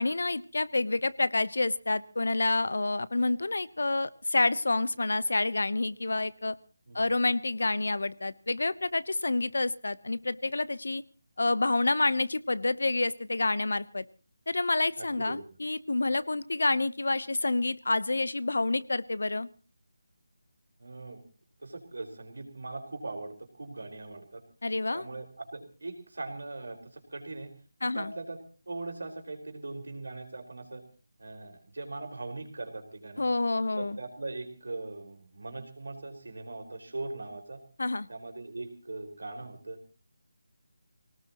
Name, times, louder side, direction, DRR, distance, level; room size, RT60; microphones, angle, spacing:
voice 1, 0.0-6.6 6.9-11.0 11.4-14.0 14.5-19.5 24.6-25.0 27.8-28.1 33.2-34.0 37.8-38.1, left 2 dB, 80° left, 18 dB, 1.0 m, -28 dB
voice 2, 15.0-15.5 20.8-21.2 21.6-24.4 24.9-27.5 27.8-30.8 31.2-33.2 33.8-37.6 38.1-39.8, right 2 dB, 70° right, 4 dB, 4.8 m, -40 dB
24.0 x 18.5 x 3.1 m, 0.36 s
figure-of-eight pair, 175°, 0 cm